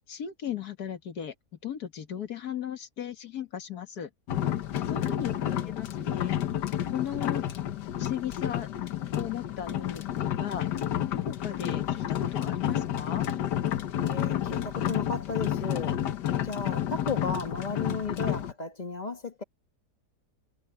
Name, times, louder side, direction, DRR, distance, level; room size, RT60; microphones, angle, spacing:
voice 1, 0.1-1.3 1.6-4.1 4.9-6.4 6.9-7.4 8.0-8.7 9.2-10.7 11.1-13.3, left 9 dB, 65° left, 2.0 m, -36 dB
sound 1, 4.3-18.5, left 11 dB, 80° left, 1.6 m, -30 dB
voice 2, 4.9-5.7 14.0-16.0 16.4-19.4, left 4 dB, 25° left, 1.7 m, -35 dB
omnidirectional pair, 1.8 m